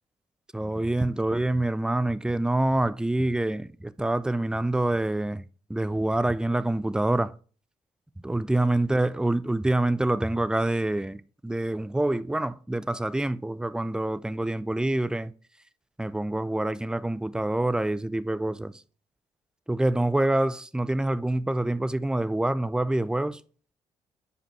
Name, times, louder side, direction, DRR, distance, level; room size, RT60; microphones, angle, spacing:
voice 1, 0.5-7.3 8.2-15.3 16.0-18.8 19.7-23.4, right 1 dB, 5° right, 0.4 m, -26 dB
5.4 x 5.0 x 4.5 m
hypercardioid pair, 45°, 15 cm